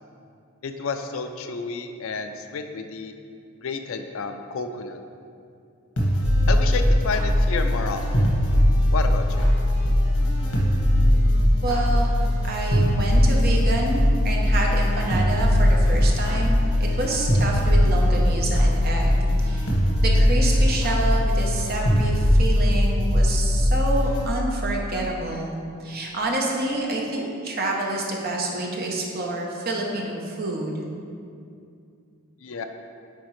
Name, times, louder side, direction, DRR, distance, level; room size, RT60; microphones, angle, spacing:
voice 1, 0.6-3.1 3.6-5.0 6.5-8.3 8.9-9.5 32.4-32.6, left 4 dB, 65° left, 6 dB, 0.4 m, -30 dB
sound 1, 6.0-24.2, left 1 dB, 85° left, 1.5 m, -20 dB
voice 2, 11.6-12.1 12.4-19.7 20.0-25.5 25.8-30.8, right 2 dB, 45° right, -1 dB, 0.8 m, -28 dB
9.2 x 3.9 x 3.2 m, 2.4 s
head